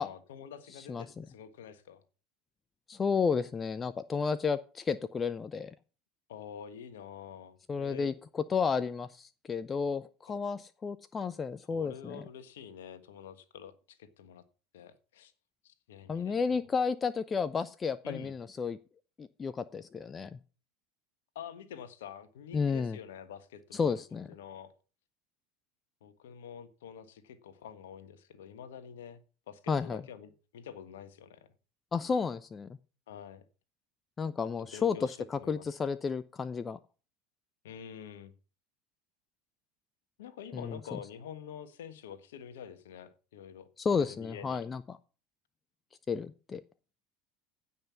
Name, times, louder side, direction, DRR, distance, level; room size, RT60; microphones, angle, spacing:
voice 1, 0.0-2.0 6.3-8.1 11.7-14.4 14.7-15.3 15.6-16.6 18.0-18.3 21.3-24.0 24.3-24.7 26.0-29.2 29.5-31.5 33.1-33.4 34.7-35.6 37.6-38.3 40.2-43.7 44.0-44.6, left 8 dB, 70° left, 1.4 m, -47 dB
voice 2, 0.9-1.2 2.9-5.7 7.7-12.2 16.1-18.8 19.2-20.3 22.5-23.0 23.7-24.3 29.7-30.0 31.9-32.7 34.2-35.0 35.3-36.8 40.5-41.0 43.8-45.0 46.1-46.6, left 5 dB, 25° left, 0.6 m, -32 dB
16.0 x 5.6 x 5.8 m
figure-of-eight pair, 75°, 0 cm